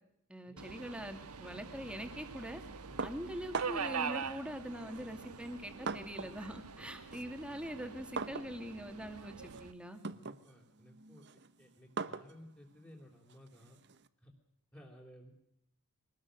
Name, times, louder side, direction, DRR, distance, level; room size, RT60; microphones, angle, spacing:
voice 1, 0.3-2.6 3.0-10.0, equal, 5° right, 6 dB, 2.4 m, -43 dB
Subway metro underground, 0.6-9.7, right 5 dB, 85° right, 1.3 m, -44 dB
sound 1, 3.0-4.0 4.9-6.5 6.8-14.1, right 4 dB, 50° right, 0.9 m, -43 dB
voice 2, 10.0-13.8 14.2-14.3 14.7-15.3, equal, 10° left, -3 dB, 3.5 m, -57 dB
24.0 x 19.5 x 6.5 m, 0.77 s
head